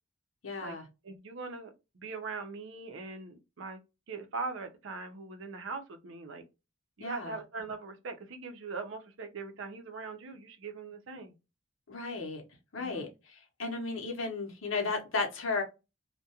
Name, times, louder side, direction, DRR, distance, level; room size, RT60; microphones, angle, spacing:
voice 1, 0.4-0.8 7.0-7.4 11.9-12.4 12.7-15.6, left 3 dB, 70° left, 0.8 m, -34 dB
voice 2, 1.0-3.8 4.1-6.4 7.0-11.3 12.8-13.1, right 4 dB, 65° right, 0.5 m, -41 dB
2.3 x 2.2 x 2.7 m
head